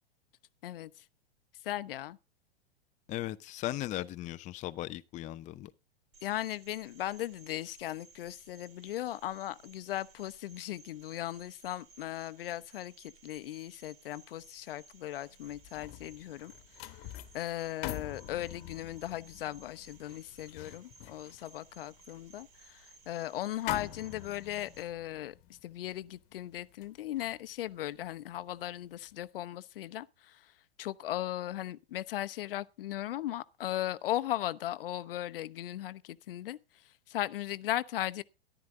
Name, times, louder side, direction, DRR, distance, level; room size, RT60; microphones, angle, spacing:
voice 1, 1.6-2.2 6.2-16.5 17.3-25.3 25.6-30.1 30.8-36.6 37.1-38.2, left 13 dB, 60° left, 0.9 m, -37 dB
voice 2, 3.1-5.7, left 15 dB, 25° left, 0.6 m, -37 dB
Cricket, 6.1-24.8, right 3 dB, 70° right, 4.8 m, -59 dB
sound 1, 15.3-28.6 29.0-29.2, left 14 dB, 40° left, 1.5 m, -46 dB
14.0 x 11.5 x 3.7 m
hypercardioid pair, 105°, 31 cm